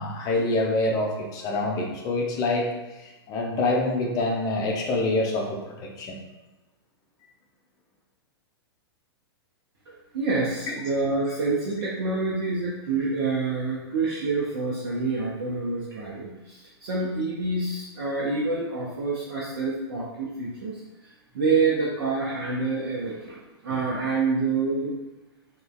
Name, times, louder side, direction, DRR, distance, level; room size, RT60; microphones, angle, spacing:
voice 1, 0.0-2.7 3.0-6.2 10.7-10.8, left 2 dB, 25° left, 0 dB, 0.8 m, -26 dB
voice 2, 9.9-20.8 21.3-24.9, right 3 dB, 55° right, -5 dB, 0.8 m, -27 dB
4.9 x 3.1 x 2.4 m, 1.1 s
figure-of-eight pair, 105°, 14 cm